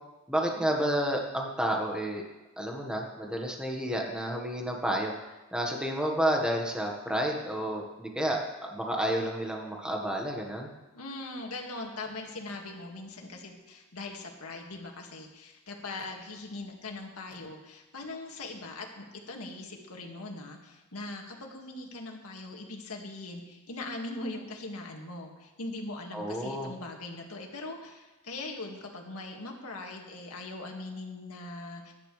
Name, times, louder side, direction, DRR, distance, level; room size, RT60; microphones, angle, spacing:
voice 1, 0.3-2.2 2.6-8.4 8.7-10.7 26.1-26.7, equal, 5° right, 0 dB, 1.5 m, -30 dB
voice 2, 10.9-31.9, left 2 dB, 80° left, 1 dB, 2.1 m, -41 dB
21.5 x 11.0 x 3.4 m, 1.1 s
head